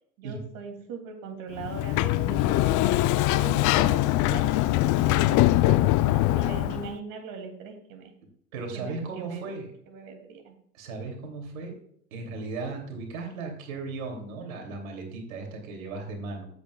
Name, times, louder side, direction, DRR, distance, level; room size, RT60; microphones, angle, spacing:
voice 1, 0.2-8.1 8.7-9.6 9.9-10.6, right 5 dB, 50° right, 3 dB, 2.9 m, -40 dB
Sliding door, 1.6-6.9, left 16 dB, 45° left, 0.7 m, -22 dB
voice 2, 8.5-9.6 10.7-11.8 12.1-16.5, right 3 dB, 75° right, 2 dB, 3.1 m, -36 dB
15.5 x 8.6 x 2.4 m, 0.66 s
hypercardioid pair, 90°, 42 cm